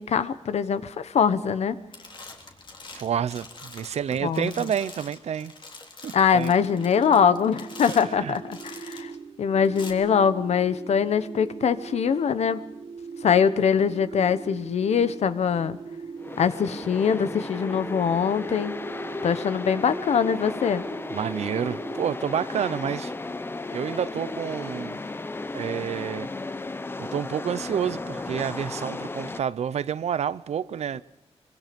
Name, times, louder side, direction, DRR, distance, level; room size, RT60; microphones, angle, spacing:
voice 1, 0.0-1.8 4.2-4.5 6.1-9.1 9.4-12.6 13.2-15.8 16.4-18.7 19.2-20.8, left 7 dB, 80° left, 1.1 m, -23 dB
sound 1, 1.4-1.7 1.9-9.1 9.6-9.9, left 3 dB, 45° left, 3.2 m, -45 dB
voice 2, 2.9-5.5 6.0-6.5 7.9-8.4 21.1-23.1 23.7-25.0 25.5-26.3 27.0-31.0, right 8 dB, 80° right, 0.7 m, -29 dB
sound 2, 6.6-22.1, right 5 dB, 55° right, 1.4 m, -41 dB
sound 3, 16.2-29.4, left 3 dB, 20° left, 0.7 m, -35 dB
25.0 x 23.5 x 5.3 m
wide cardioid pair, 145°, 11 cm